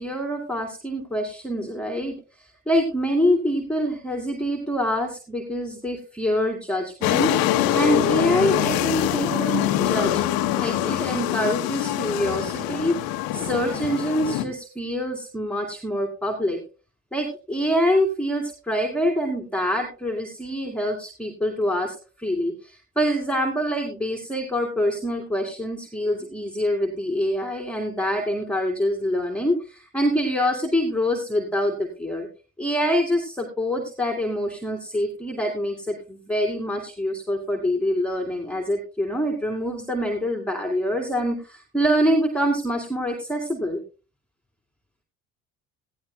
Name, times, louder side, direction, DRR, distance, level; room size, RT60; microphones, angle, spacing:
voice 1, 0.0-10.3 10.6-13.0 13.3-16.6 17.1-32.3 32.6-43.8, equal, 5° left, 2 dB, 2.4 m, -25 dB
sound 1, 7.0-14.4, left 12 dB, 70° left, 1.2 m, -24 dB
17.5 x 14.5 x 2.3 m, 0.34 s
hypercardioid pair, 60°, 38 cm